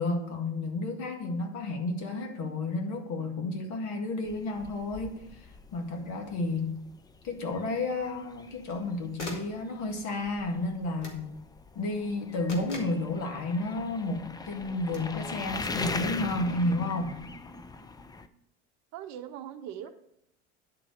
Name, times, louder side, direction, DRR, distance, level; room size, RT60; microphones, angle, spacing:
voice 1, 0.0-5.4 5.7-6.8 7.2-11.4 11.8-17.2, left 2 dB, 55° left, 4 dB, 2.0 m, -31 dB
sound 1, 4.2-18.3, left 3 dB, 10° left, 0.5 m, -41 dB
sound 2, 5.9-6.0 8.4-8.8 9.2-9.6 11.0-11.3 12.5-13.0 14.9-15.1, left 2 dB, 80° left, 2.1 m, -41 dB
voice 2, 18.9-19.9, right 10 dB, 50° right, 9 dB, 0.8 m, -40 dB
10.5 x 4.0 x 6.5 m, 0.77 s
hypercardioid pair, 85°, 35 cm